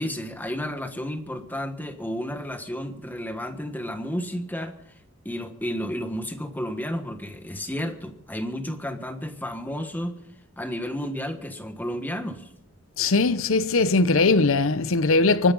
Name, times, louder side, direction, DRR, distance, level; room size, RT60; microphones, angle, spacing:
voice 1, 0.0-4.8 5.2-10.2 10.6-12.5, equal, 10° left, 1.3 m, -32 dB
voice 2, 13.0-15.5, left 3 dB, 70° left, 0.8 m, -20 dB
24.0 x 10.0 x 5.4 m
head